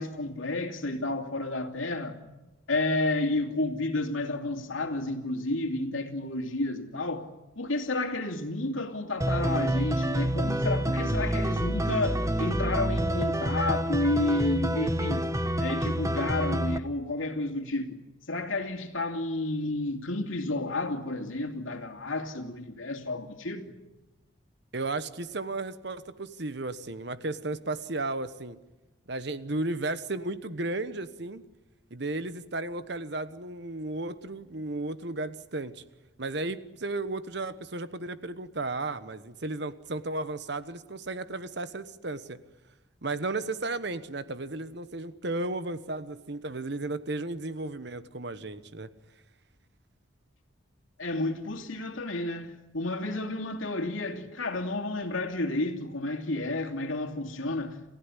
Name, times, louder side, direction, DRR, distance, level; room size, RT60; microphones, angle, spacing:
voice 1, 0.0-2.1 2.7-7.3 7.6-15.3 15.6-18.0 18.3-23.7 51.0-57.8, left 2 dB, 85° left, 2.7 m, -31 dB
sound 1, 9.2-16.8, right 1 dB, 15° right, 0.9 m, -28 dB
voice 2, 24.7-28.6 29.1-31.4 31.9-35.8 36.2-42.4 43.0-48.9, right 2 dB, 60° right, 1.2 m, -34 dB
29.0 x 15.5 x 9.9 m
head